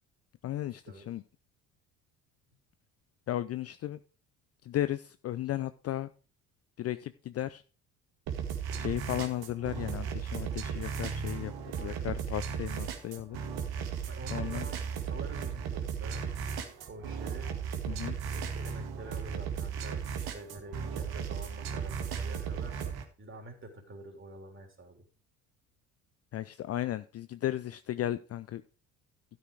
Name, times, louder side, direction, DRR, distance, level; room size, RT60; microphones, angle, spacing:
voice 1, 0.4-1.2 3.3-4.0 4.6-6.1 6.8-7.6 8.8-11.5 11.8-13.4 14.3-14.7 17.9-18.2 26.3-28.6, left 13 dB, 35° left, 13 dB, 0.5 m, -35 dB
sound 1, 8.3-23.0, right 7 dB, 55° right, 2.0 m, -36 dB
voice 2, 11.8-12.1 14.1-16.3 16.9-17.6 18.3-22.8 23.2-25.0, right 2 dB, 25° right, 3 dB, 3.8 m, -47 dB
12.5 x 6.2 x 4.9 m, 0.37 s
hypercardioid pair, 60°, 45 cm